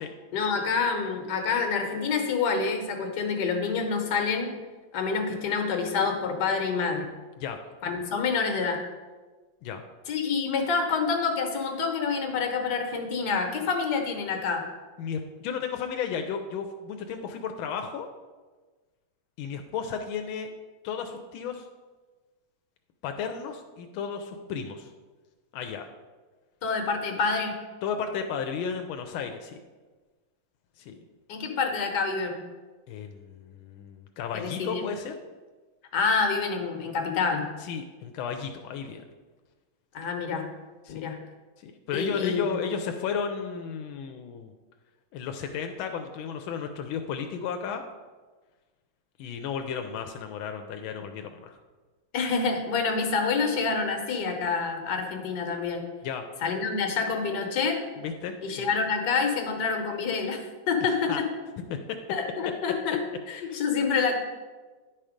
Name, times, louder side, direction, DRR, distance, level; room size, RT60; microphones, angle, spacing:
voice 1, 0.3-4.5 4.9-7.1 7.8-8.8 10.1-14.6 26.6-27.6 31.3-32.4 34.3-34.8 35.9-37.5 39.9-40.5 40.9-41.2 41.9-42.6 52.1-55.9 56.4-57.8 58.4-60.4 60.7-61.3 62.1-64.1, left 5 dB, 60° left, 3 dB, 1.6 m, -27 dB
voice 2, 15.0-18.1 19.4-20.5 20.8-21.7 23.0-24.9 25.5-25.9 27.8-29.6 30.8-31.1 32.9-35.2 37.6-39.0 40.8-41.0 41.6-44.5 45.1-47.8 49.2-51.6 56.0-56.2 58.0-58.7 61.1-61.2 61.6-61.8 63.4-63.6, left 6 dB, 85° left, 5 dB, 1.4 m, -34 dB
10.5 x 4.4 x 5.0 m, 1.3 s
omnidirectional pair, 2.2 m